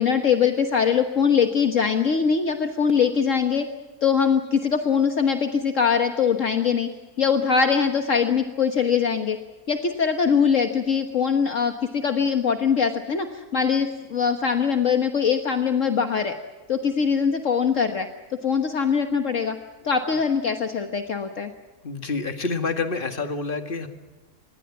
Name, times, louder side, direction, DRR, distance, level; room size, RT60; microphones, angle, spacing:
voice 1, 0.0-3.7 4.0-6.9 7.2-9.4 9.7-16.3 16.7-18.1 18.3-19.6 19.8-21.5, left 6 dB, 60° left, 6 dB, 1.6 m, -22 dB
voice 2, 21.8-23.9, left 4 dB, 35° left, 7 dB, 2.1 m, -28 dB
26.5 x 21.0 x 7.2 m, 1.2 s
omnidirectional pair, 1.6 m